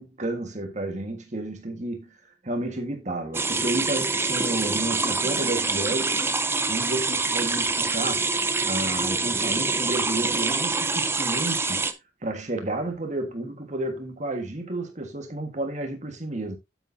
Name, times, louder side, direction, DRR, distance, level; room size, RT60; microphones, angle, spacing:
voice 1, 0.0-6.1 6.7-8.3 8.6-11.9 12.2-16.6, right 2 dB, 40° right, 1.6 m, -31 dB
sound 1, 3.3-11.9, right 3 dB, 15° right, 0.6 m, -25 dB
8.9 x 8.3 x 2.7 m
head